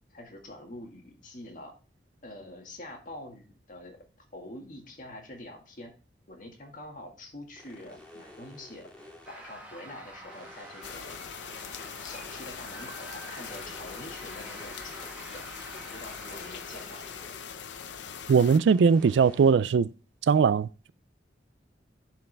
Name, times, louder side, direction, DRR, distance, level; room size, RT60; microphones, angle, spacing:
voice 1, 0.1-1.7 2.2-4.0 4.3-5.9 6.3-8.9 9.3-11.2 12.0-15.4 15.7-17.1, left 1 dB, 45° left, 1.9 m, -45 dB
sound 1, 7.6-9.7 10.3-12.8 13.4-15.5 16.2-17.7 18.4-19.5, left 1 dB, 5° left, 1.8 m, -52 dB
sound 2, 9.2-19.4, right 1 dB, 10° right, 1.5 m, -48 dB
sound 3, 10.8-18.6, left 7 dB, 85° left, 0.6 m, -42 dB
voice 2, 18.3-19.9 20.3-20.9, right 6 dB, 80° right, 0.3 m, -20 dB
11.0 x 4.7 x 3.4 m
head